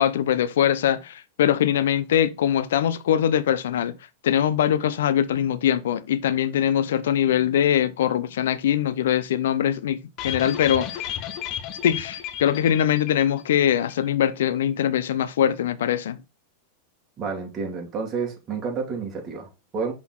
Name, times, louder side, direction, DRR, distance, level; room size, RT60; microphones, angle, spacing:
voice 1, 0.0-3.9 4.2-10.0 10.2-11.1 11.8-16.2, left 10 dB, 80° left, 0.5 m, -22 dB
sound 1, 10.2-13.6 13.9-14.0 14.3-14.4, left 10 dB, 45° left, 0.8 m, -33 dB
voice 2, 17.2-19.9, right 5 dB, 30° right, 2.8 m, -30 dB
5.6 x 4.1 x 4.5 m
hypercardioid pair, 115°, 0 cm